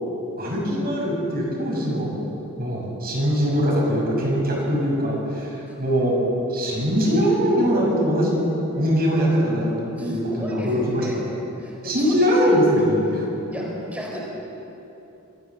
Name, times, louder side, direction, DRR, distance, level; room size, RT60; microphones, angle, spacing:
voice 1, 0.4-2.2 2.6-6.2 6.5-8.5 8.8-11.3 11.8-13.3 13.6-13.7, equal, 45° right, -2 dB, 6.7 m, -22 dB
voice 2, 10.0-11.2 11.6-12.2 13.1-13.2 13.5-14.2, equal, 5° right, -3 dB, 4.8 m, -36 dB
23.5 x 16.5 x 7.5 m, 3.0 s
head